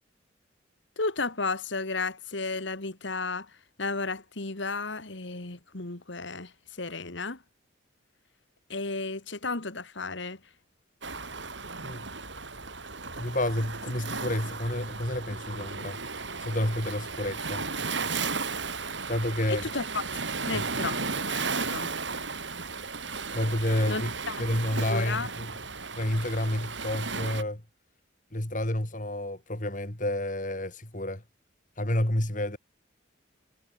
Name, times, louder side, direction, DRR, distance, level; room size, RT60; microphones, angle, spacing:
voice 1, 1.0-7.4 8.7-10.4 19.5-20.0 20.5-21.9 23.9-24.3 24.9-25.3, left 3 dB, 65° left, 2.2 m, -33 dB
Waves surf, 11.0-27.4, right 4 dB, 65° right, 7.4 m, -35 dB
voice 2, 13.2-16.0 16.4-17.7 19.1-19.7 20.5-20.7 23.3-24.1 24.4-25.5 25.9-27.6 28.3-31.2 31.8-32.6, left 1 dB, 40° left, 2.9 m, -29 dB
head